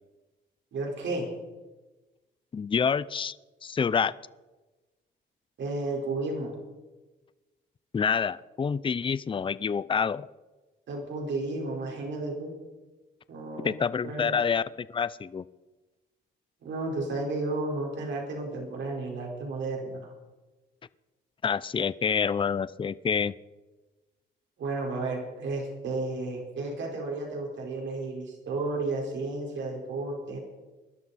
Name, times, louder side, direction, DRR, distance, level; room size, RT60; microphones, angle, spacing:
voice 1, 0.7-1.3 5.6-6.6 10.9-12.5 13.3-13.8 14.0-14.4 16.6-20.0 24.6-30.4, right 2 dB, 70° right, 0 dB, 4.6 m, -32 dB
voice 2, 2.5-3.4 3.6-4.1 7.9-10.3 13.6-14.6 14.9-15.4 21.4-23.3, left 6 dB, 25° left, 18 dB, 0.5 m, -27 dB
20.5 x 12.0 x 4.2 m, 1.2 s
cardioid pair, 90°, 20 cm